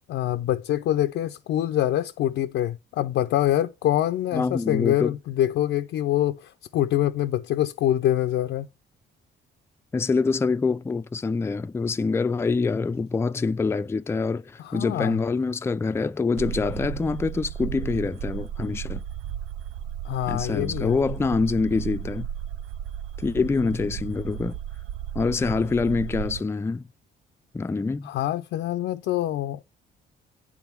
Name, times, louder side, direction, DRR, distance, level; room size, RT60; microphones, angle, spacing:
voice 1, 0.1-8.7 14.6-15.2 20.0-21.0 28.0-29.6, left 12 dB, 75° left, 0.5 m, -25 dB
voice 2, 4.3-5.1 9.9-19.0 20.3-22.3 23.2-24.6 25.1-26.9 27.5-28.1, left 4 dB, 15° left, 0.3 m, -25 dB
sound 1, 16.4-26.4, right 10 dB, 80° right, 0.4 m, -34 dB
8.7 x 3.6 x 5.9 m
cardioid pair, 90°, 20 cm